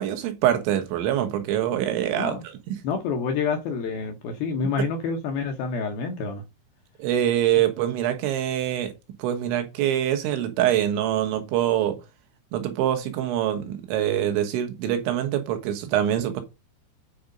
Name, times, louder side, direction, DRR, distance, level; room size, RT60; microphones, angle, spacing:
voice 1, 0.0-2.8 7.0-8.9 9.2-12.0 12.5-16.4, right 11 dB, 75° right, 3.6 m, -24 dB
voice 2, 2.8-6.4, left 5 dB, 70° left, 2.4 m, -28 dB
9.4 x 4.3 x 5.2 m
omnidirectional pair, 5.5 m